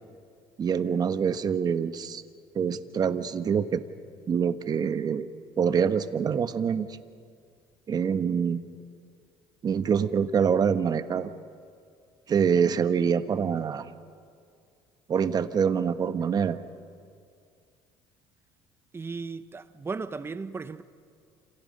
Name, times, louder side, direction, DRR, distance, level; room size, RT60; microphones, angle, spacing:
voice 1, 0.6-2.2 2.5-3.8 4.3-5.3 5.6-6.9 7.9-8.6 9.6-11.3 12.3-13.9 15.1-16.6, right 7 dB, 40° right, 1.3 m, -25 dB
voice 2, 18.9-20.8, right 4 dB, 25° right, 1.1 m, -36 dB
28.0 x 27.5 x 5.5 m
cardioid pair, 100°, 10 cm